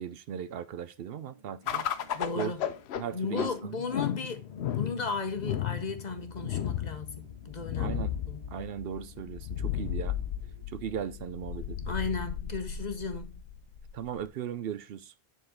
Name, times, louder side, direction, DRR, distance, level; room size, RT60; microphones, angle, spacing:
voice 1, 0.0-1.9 2.4-2.5 3.0-3.8 7.8-8.1 8.5-10.2 10.7-11.8 13.9-15.1, right 8 dB, 70° right, 0.7 m, -37 dB
sound 1, 1.0-12.9, right 5 dB, 45° right, 2.9 m, -60 dB
sound 2, 1.7-14.3, left 10 dB, 80° left, 0.9 m, -35 dB
voice 2, 2.1-2.6 3.1-8.4 11.9-13.4, left 4 dB, 45° left, 0.9 m, -35 dB
9.6 x 3.9 x 3.7 m
omnidirectional pair, 1.1 m